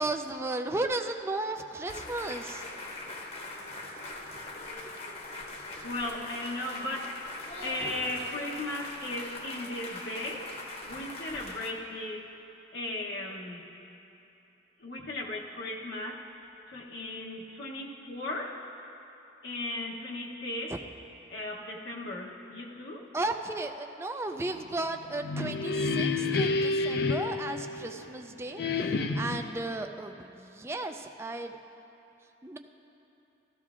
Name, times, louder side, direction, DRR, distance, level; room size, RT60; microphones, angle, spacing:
voice 1, 0.0-2.7 20.7-20.8 23.1-31.6 32.4-32.6, right 2 dB, 15° right, 5 dB, 0.3 m, -34 dB
sound 1, 1.9-11.7, left 2 dB, 35° left, 0.9 m, -41 dB
voice 2, 5.8-10.5 10.8-12.3 12.7-13.7 14.8-16.3 16.7-18.7 19.4-20.8 21.3-23.1, left 1 dB, 75° left, -3 dB, 0.9 m, -36 dB
sound 2, 25.0-28.1 28.6-29.5, left 3 dB, 55° left, 0.5 m, -29 dB
15.5 x 13.5 x 2.4 m, 2.9 s
head